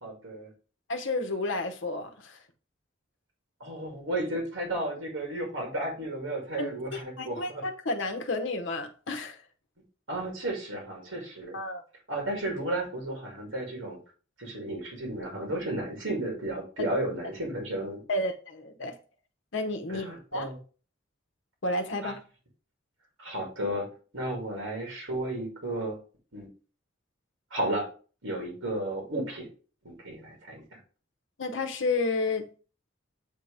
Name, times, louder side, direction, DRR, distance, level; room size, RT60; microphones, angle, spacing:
voice 1, 0.0-0.5 3.6-7.6 10.1-11.6 12.1-14.0 14.4-18.0 19.9-20.6 22.0-22.1 23.2-26.0 26.3-26.5 27.5-27.9 28.2-29.5 29.8-30.8, right 1 dB, 85° right, 2.2 m, -33 dB
voice 2, 0.9-2.4 6.6-9.4 11.5-11.8 16.8-16.9 18.1-19.0 19.5-20.1 20.3-20.5 21.6-22.2 31.4-32.5, left 2 dB, 65° left, 0.9 m, -31 dB
7.5 x 2.9 x 4.9 m
head